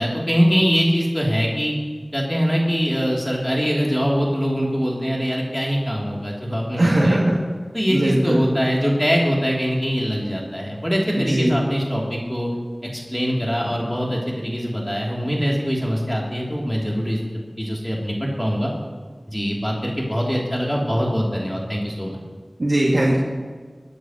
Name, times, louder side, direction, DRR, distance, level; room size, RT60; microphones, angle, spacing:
voice 1, 0.0-1.7 2.1-7.2 7.7-12.5 12.9-17.2 17.6-18.7 19.3-22.2, equal, 5° left, -3 dB, 3.0 m, -23 dB
voice 2, 6.8-7.4 7.9-8.4 11.2-11.5 22.6-23.2, right 1 dB, 70° right, -6 dB, 2.3 m, -19 dB
22.5 x 10.5 x 3.1 m, 1.5 s
wide cardioid pair, 40°, 0 cm